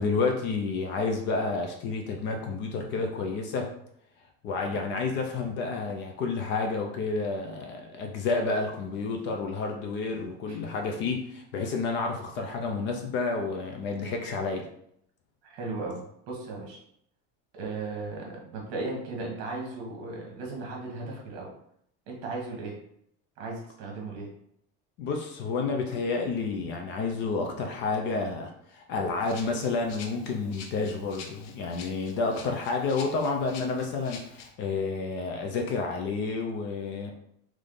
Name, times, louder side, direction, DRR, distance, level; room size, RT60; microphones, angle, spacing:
voice 1, 0.0-3.7 4.4-14.7 25.0-37.1, left 4 dB, 35° left, 3 dB, 0.4 m, -30 dB
voice 2, 15.4-16.8 17.5-21.5 22.1-22.8 23.4-24.3, right 3 dB, 50° right, -1 dB, 1.3 m, -36 dB
Rattle (instrument), 29.2-34.5, left 5 dB, 65° left, 0.7 m, -47 dB
3.5 x 3.2 x 3.8 m, 0.71 s
cardioid pair, 180°, 32 cm